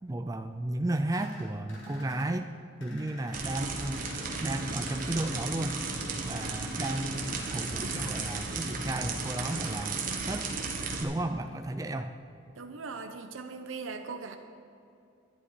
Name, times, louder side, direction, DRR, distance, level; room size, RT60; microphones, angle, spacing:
voice 1, 0.0-2.5 2.8-4.1 4.4-5.8 6.2-10.0 10.3-10.5 11.0-12.1, right 1 dB, 15° right, 7 dB, 0.4 m, -33 dB
sound 1, 1.1-2.3 2.8-3.4 3.9-4.2 4.6-5.3 6.4-8.3, equal, 70° left, 2.7 m, -48 dB
sound 2, 3.3-11.0, right 3 dB, 45° right, 1.3 m, -34 dB
voice 2, 12.6-14.4, right 4 dB, 85° right, 6 dB, 0.8 m, -39 dB
11.0 x 11.0 x 4.9 m, 2.6 s
head